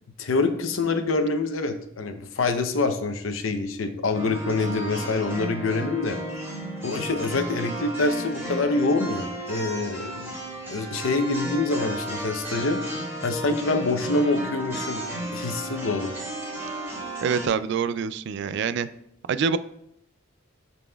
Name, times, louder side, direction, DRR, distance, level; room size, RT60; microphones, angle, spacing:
voice 1, 0.2-6.2 6.8-10.3 10.7-16.1, left 3 dB, 85° left, 7 dB, 0.7 m, -26 dB
sound 1, 4.1-17.5, right 1 dB, 15° right, 2.1 m, -34 dB
voice 2, 17.2-18.9 19.3-19.6, right 6 dB, 60° right, 15 dB, 0.3 m, -25 dB
11.0 x 4.1 x 2.3 m, 0.74 s
head